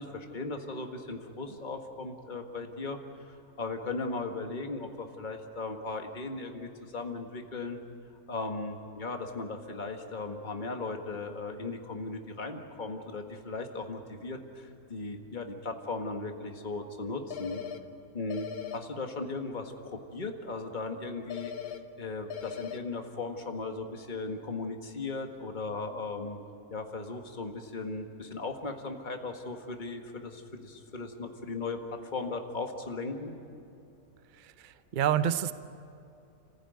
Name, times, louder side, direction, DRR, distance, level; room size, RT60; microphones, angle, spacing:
voice 1, 0.0-3.0 3.3-7.8 8.3-17.6 18.1-18.5 18.7-21.5 22.0-26.4 26.7-31.8 32.1-33.3, left 3 dB, 30° left, 4 dB, 1.8 m, -37 dB
sound 1, 17.3-17.8 18.3-18.8 21.3-21.8 22.3-22.8, left 9 dB, 75° left, 1.6 m, -38 dB
voice 2, 34.4-35.5, right 10 dB, 45° right, 13 dB, 0.6 m, -29 dB
30.0 x 15.5 x 9.4 m, 2.7 s
omnidirectional pair, 1.6 m